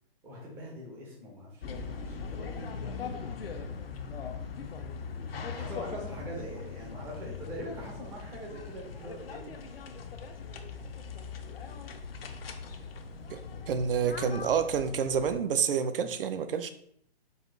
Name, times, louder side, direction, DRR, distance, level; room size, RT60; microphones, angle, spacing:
voice 1, 0.2-3.5 4.9-9.8, equal, 5° right, 0.5 m, -43 dB
sound 1, 1.6-15.4, left 5 dB, 65° left, 0.6 m, -40 dB
voice 2, 13.3-16.7, right 7 dB, 60° right, 0.5 m, -29 dB
4.1 x 2.4 x 3.7 m
hypercardioid pair, 140°, 31 cm